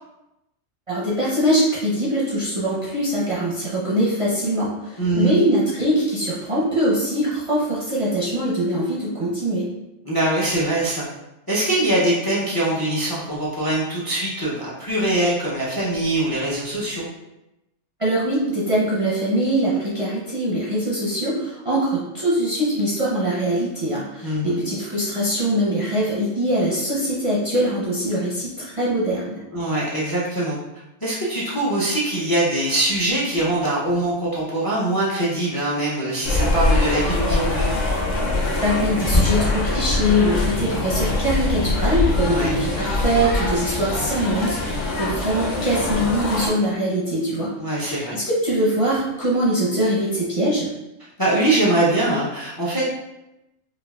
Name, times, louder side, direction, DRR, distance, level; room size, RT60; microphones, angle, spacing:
voice 1, 0.9-9.7 18.0-29.4 38.6-47.5 47.8-50.7, equal, 35° right, -8 dB, 0.6 m, -22 dB
voice 2, 5.0-5.3 10.0-11.1 11.5-17.1 24.2-24.6 29.5-30.6 31.0-37.7 42.3-42.5 47.6-48.2 51.2-52.8, right 1 dB, 25° left, -7 dB, 0.5 m, -22 dB
sound 1, 36.2-46.5, left 2 dB, 80° left, 1.1 m, -23 dB
4.7 x 2.3 x 2.3 m, 0.93 s
omnidirectional pair, 1.3 m